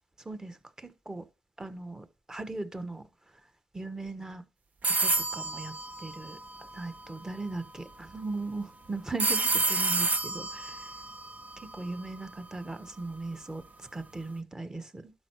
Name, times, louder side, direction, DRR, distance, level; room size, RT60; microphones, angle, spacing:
voice 1, 0.2-1.2 1.6-3.0 3.7-4.4 4.8-10.9 11.6-13.6 13.9-15.0, right 2 dB, 15° right, 1.3 m, -38 dB
sound 1, 4.8-6.9 9.2-12.2, right 3 dB, 45° right, 0.9 m, -30 dB
12.0 x 5.5 x 4.6 m
supercardioid pair, 70°, 4 cm